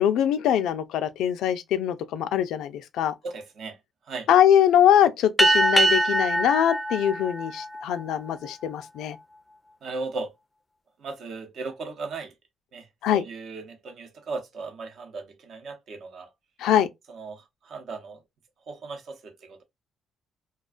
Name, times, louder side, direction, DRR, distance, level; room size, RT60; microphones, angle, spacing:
voice 1, 0.0-3.1 4.3-9.2 13.0-13.2 16.6-16.9, left 10 dB, 85° left, 0.4 m, -22 dB
voice 2, 3.2-3.8 4.1-4.3 9.8-10.3 11.0-12.3 12.7-16.3 17.1-18.2 18.7-19.6, right 3 dB, 65° right, 0.7 m, -37 dB
sound 1, 5.4-8.3, right 1 dB, 10° left, 0.4 m, -23 dB
2.3 x 2.2 x 2.3 m
cardioid pair, 90°, 0 cm